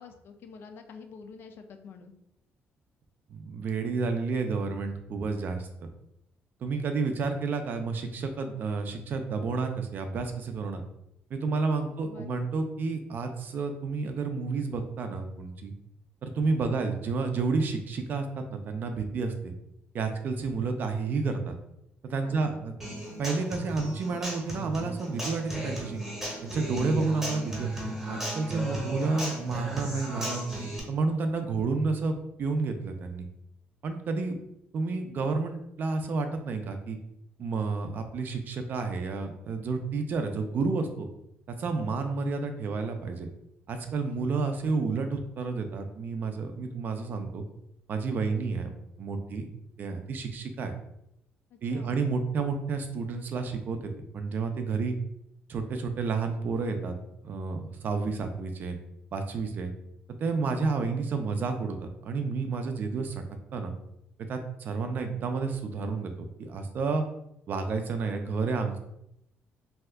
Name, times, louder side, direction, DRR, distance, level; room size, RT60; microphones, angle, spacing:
voice 1, 0.0-2.2 12.0-12.3 16.6-16.8 22.2-22.6 51.5-52.0, left 5 dB, 55° left, 6 dB, 0.4 m, -47 dB
voice 2, 3.3-5.9 6.6-10.8 11.3-15.7 16.2-19.5 19.9-21.5 22.0-22.7 23.2-26.0 26.4-27.7 28.1-30.5 30.9-32.1 32.4-33.3 33.8-34.4 34.7-37.0 37.4-41.1 41.5-43.3 43.7-47.4 47.9-48.7 49.0-49.5 49.8-50.7 51.6-55.0 55.5-56.9 57.2-58.8 59.1-59.7 60.1-63.2 63.5-63.7 64.3-67.0 67.5-68.8, right 4 dB, 50° right, 6 dB, 0.4 m, -30 dB
Human voice / Acoustic guitar, 22.8-30.8, right 1 dB, 10° right, 0.8 m, -35 dB
2.7 x 2.3 x 3.3 m, 0.81 s
cardioid pair, 145°, 4 cm